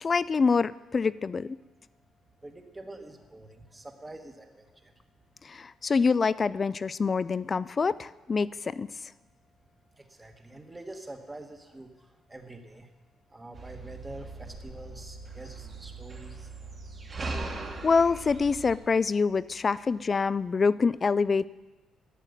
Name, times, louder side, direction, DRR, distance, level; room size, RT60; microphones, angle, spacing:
voice 1, 0.0-1.6 5.5-8.9 17.8-21.5, left 5 dB, 30° left, 18 dB, 0.3 m, -26 dB
voice 2, 2.4-4.9 9.9-12.9 13.3-16.5, right 2 dB, 15° right, 5 dB, 1.3 m, -46 dB
sound 1, 13.5-18.8, right 3 dB, 30° right, 1.6 m, -40 dB
11.5 x 9.1 x 6.6 m, 1.2 s
cardioid pair, 120°, 0 cm